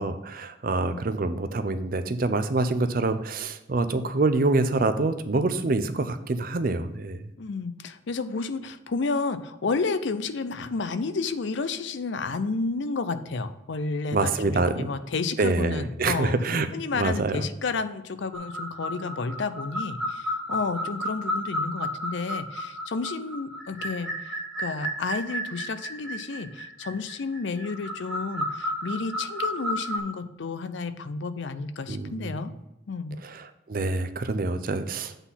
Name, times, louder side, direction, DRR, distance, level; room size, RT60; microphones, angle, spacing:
voice 1, 0.0-7.2 14.1-14.9 15.4-16.7 17.0-17.4 31.9-32.4 33.2-35.1, right 3 dB, 45° right, 10 dB, 0.5 m, -26 dB
voice 2, 7.4-16.4 16.7-32.5 32.9-33.2, left 4 dB, 65° left, 12 dB, 0.5 m, -31 dB
sound 1, 18.3-30.0, equal, ahead, 1.1 m, -32 dB
8.1 x 4.0 x 5.6 m, 0.90 s
head